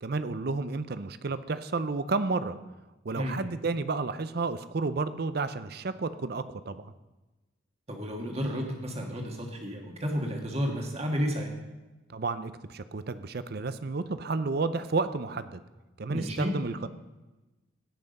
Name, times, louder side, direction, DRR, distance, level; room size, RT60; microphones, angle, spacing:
voice 1, 0.0-2.6 3.0-6.9 12.1-15.6 16.0-16.9, right 3 dB, 50° right, 13 dB, 0.5 m, -31 dB
voice 2, 7.9-11.5 16.1-16.5, equal, 30° right, 1 dB, 1.6 m, -31 dB
17.5 x 5.9 x 5.3 m, 1.1 s
head